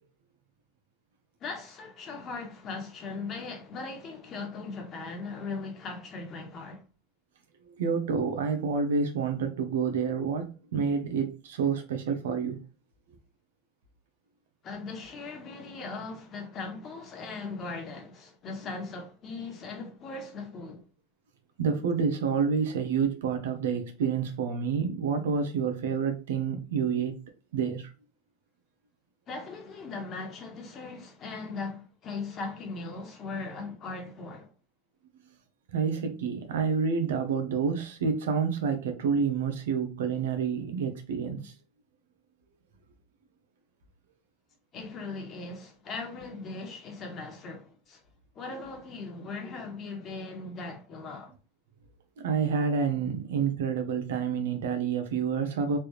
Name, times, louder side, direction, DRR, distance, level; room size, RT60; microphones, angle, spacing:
voice 1, 1.4-6.8 14.6-20.8 29.3-34.5 44.7-48.0 48.3-51.3, left 3 dB, 35° left, 1.2 m, -39 dB
voice 2, 7.7-12.6 21.6-27.1 27.5-27.9 35.7-41.5 52.2-55.8, right 6 dB, 85° right, 0.8 m, -28 dB
3.4 x 2.5 x 3.0 m
supercardioid pair, 120°, 0 cm